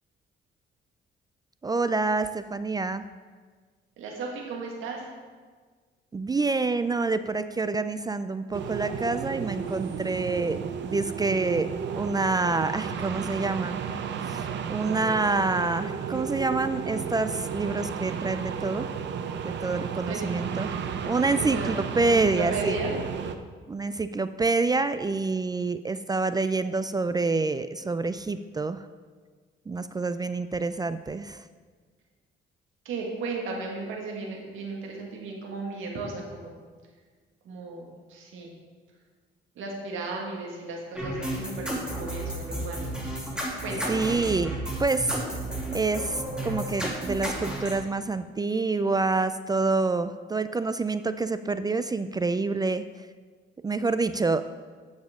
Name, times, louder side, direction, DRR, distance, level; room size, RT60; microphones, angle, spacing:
voice 1, 1.6-3.0 6.1-11.7 12.0-13.8 14.3-14.4 14.7-18.9 19.4-20.7 21.1-22.8 23.7-28.8 29.7-31.4 43.9-44.5 44.8-45.2 45.7-52.8 53.6-54.5, right 3 dB, 20° right, 12 dB, 0.3 m, -27 dB
voice 2, 4.0-5.1 20.0-20.3 21.4-23.0 32.9-36.5 37.5-38.5 39.6-42.9 43.6-44.5, right 3 dB, 85° right, 0 dB, 1.8 m, -35 dB
sound 1, 8.5-23.3, right 7 dB, 65° right, 0.7 m, -33 dB
sound 2, 41.0-47.7, right 1 dB, 5° right, 2.7 m, -32 dB
12.0 x 6.4 x 3.7 m, 1.5 s
cardioid pair, 90°, 20 cm